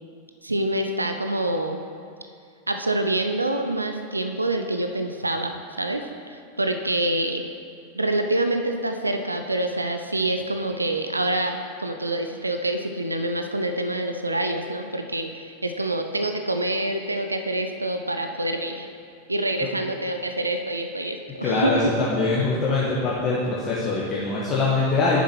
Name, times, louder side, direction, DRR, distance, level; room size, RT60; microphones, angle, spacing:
voice 1, 0.4-1.8 2.7-7.4 7.9-18.9 19.3-21.9, right 1 dB, 80° right, 6 dB, 0.5 m, -26 dB
voice 2, 21.4-25.2, left 3 dB, 25° left, -7 dB, 1.4 m, -23 dB
9.4 x 7.2 x 4.5 m, 2.4 s
figure-of-eight pair, 90°, 0 cm